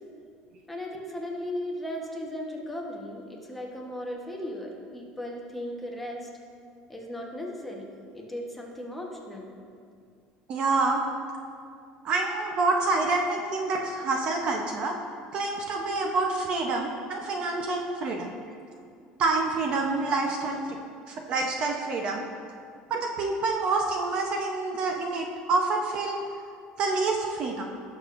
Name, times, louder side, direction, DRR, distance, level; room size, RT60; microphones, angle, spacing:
voice 1, 0.7-6.3 6.9-9.5 18.5-18.6 20.9-21.0, left 1 dB, 5° left, -2 dB, 1.0 m, -36 dB
voice 2, 10.5-11.0 12.0-15.0 15.3-18.3 19.2-20.8 21.1-22.3 22.9-26.5 26.8-27.6, right 3 dB, 35° right, 2 dB, 0.7 m, -27 dB
17.5 x 6.8 x 2.5 m, 2.3 s
cardioid pair, 170°, 3 cm